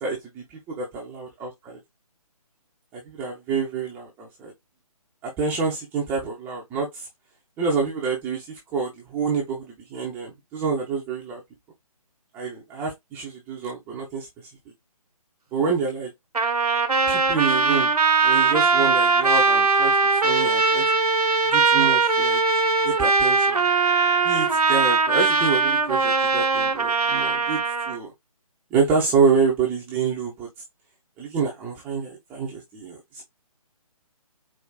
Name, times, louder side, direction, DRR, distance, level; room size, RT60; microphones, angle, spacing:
voice 1, 0.0-1.8 2.9-4.5 5.2-7.1 7.6-11.4 12.3-14.3 15.5-16.1 17.1-17.9 18.2-20.8 21.5-22.4 22.8-23.6 24.2-28.1 28.7-30.5 31.2-33.0, right 5 dB, 10° right, 0.5 m, -27 dB
Trumpet, 16.3-28.0, right 4 dB, 85° right, 0.9 m, -20 dB
4.7 x 2.5 x 2.3 m
figure-of-eight pair, 145°, 19 cm